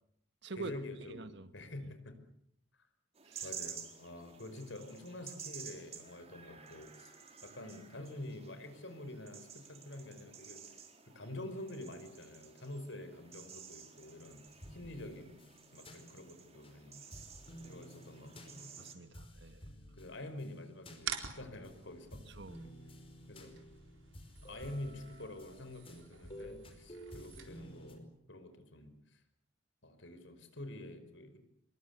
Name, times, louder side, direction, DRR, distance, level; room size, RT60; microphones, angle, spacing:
voice 1, 0.6-2.2 3.4-7.1 7.4-10.7 11.1-14.4 14.7-15.4 15.7-17.0 17.7-18.8 19.9-22.2 23.3-23.5 24.4-29.2 29.8-31.4, left 1 dB, 75° left, 5.2 m, -47 dB
voice 2, 1.1-1.5 3.2-3.5 18.8-19.6 22.3-22.6, right 3 dB, 65° right, 1.7 m, -46 dB
sound 1, 3.1-18.9, right 7 dB, 35° right, 4.3 m, -52 dB
sound 2, 14.5-16.8 17.1-21.8 22.1-28.0, equal, 30° left, 4.9 m, -53 dB
sound 3, 21.0-28.0, right 8 dB, 90° right, 4.2 m, -48 dB
27.0 x 23.0 x 8.2 m
head